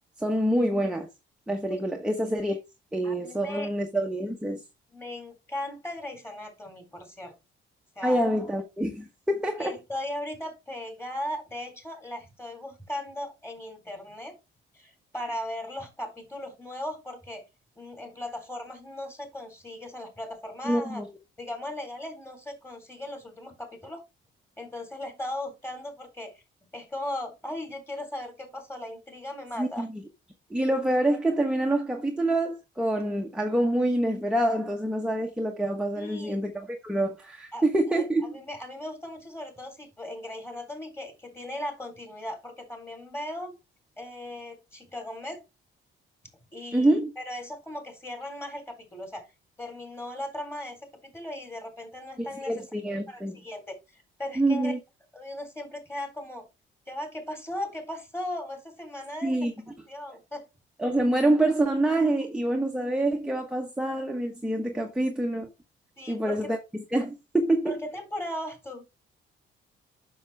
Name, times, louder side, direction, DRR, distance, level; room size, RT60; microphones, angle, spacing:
voice 1, 0.2-1.1 1.5-2.6 2.9-4.6 8.0-9.7 20.6-21.1 29.6-30.0 30.5-38.3 46.7-47.1 52.2-53.4 54.4-54.8 59.2-59.5 60.8-65.5 66.1-66.6 66.9-67.7, right 1 dB, 5° right, 1.2 m, -26 dB
voice 2, 3.0-3.7 4.9-7.3 8.0-8.2 9.6-14.3 14.7-17.4 17.8-21.0 21.4-24.0 24.6-26.3 26.7-29.9 35.9-36.4 37.5-37.6 37.9-38.0 38.3-43.5 44.0-45.4 46.5-49.3 49.6-50.8 51.1-52.6 53.1-54.7 55.1-56.5 56.9-59.4 59.9-60.5 66.0-66.5 67.7-68.8, left 1 dB, 15° left, 3.8 m, -37 dB
7.1 x 6.3 x 3.5 m
cardioid pair, 90°, 20 cm